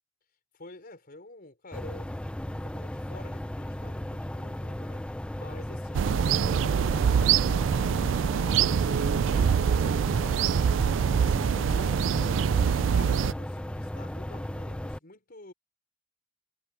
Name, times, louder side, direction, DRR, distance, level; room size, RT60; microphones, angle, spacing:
voice 1, 0.5-2.1 2.7-11.4 11.7-12.6 12.9-15.5, left 2 dB, 50° left, 5.3 m, -48 dB
sound 1, 1.7-15.0, left 1 dB, 5° left, 0.4 m, -36 dB
sound 2, 5.9-13.3, right 7 dB, 70° right, 0.3 m, -24 dB
head